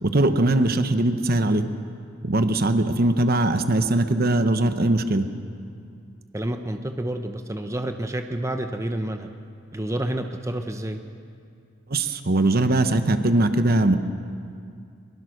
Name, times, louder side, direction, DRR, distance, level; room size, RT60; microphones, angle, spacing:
voice 1, 0.0-1.7 2.2-5.2 11.9-14.0, right 2 dB, 50° right, 9 dB, 1.1 m, -21 dB
voice 2, 6.3-9.3 9.7-11.0, right 1 dB, 15° right, 6 dB, 0.9 m, -29 dB
23.5 x 22.0 x 6.6 m, 2.3 s
head